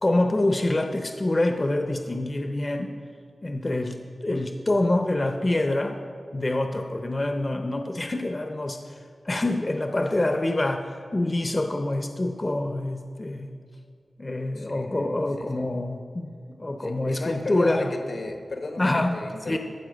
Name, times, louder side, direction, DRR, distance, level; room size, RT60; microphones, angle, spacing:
voice 1, 0.0-2.9 3.4-4.0 4.2-6.0 6.3-9.0 9.2-13.5 14.2-16.3 16.6-17.9 18.8-19.1 19.5-19.6, left 2 dB, 30° left, 5 dB, 0.6 m, -26 dB
voice 2, 14.6-14.9 15.4-15.6 16.8-19.6, left 2 dB, 75° left, 4 dB, 1.2 m, -35 dB
13.0 x 4.4 x 7.7 m, 2.2 s
wide cardioid pair, 105°, 0 cm